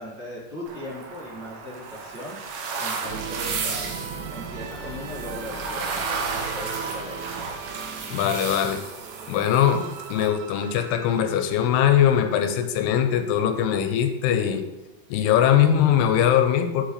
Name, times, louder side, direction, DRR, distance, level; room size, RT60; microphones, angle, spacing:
voice 1, 0.0-7.1, left 1 dB, 35° right, -9 dB, 2.0 m, -38 dB
sound 1, 0.7-10.3, right 4 dB, 70° right, 2.6 m, -34 dB
sound 2, 3.0-11.4, right 6 dB, 85° right, 1.9 m, -37 dB
voice 2, 8.1-8.8 9.3-14.6 15.1-16.8, left 9 dB, 90° left, 7 dB, 2.7 m, -21 dB
8.1 x 6.4 x 3.3 m, 1.0 s
omnidirectional pair, 4.7 m